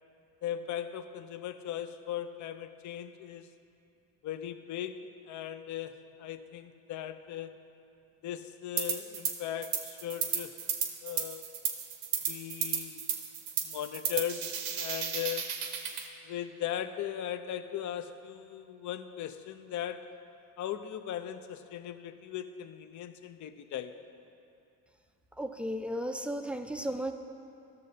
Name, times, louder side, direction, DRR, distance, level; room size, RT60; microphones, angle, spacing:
voice 1, 0.4-3.5 4.2-5.9 6.2-7.6 8.2-10.6 11.0-11.4 12.3-13.1 13.6-15.8 16.2-20.1 20.6-24.0, left 10 dB, 45° left, 11 dB, 0.6 m, -38 dB
sound 1, 8.8-9.3 9.6-16.1, right 8 dB, 70° right, 1.0 m, -33 dB
voice 2, 25.3-27.1, equal, 5° right, 5 dB, 0.4 m, -34 dB
14.0 x 6.5 x 2.7 m, 2.7 s
hypercardioid pair, 60°, 42 cm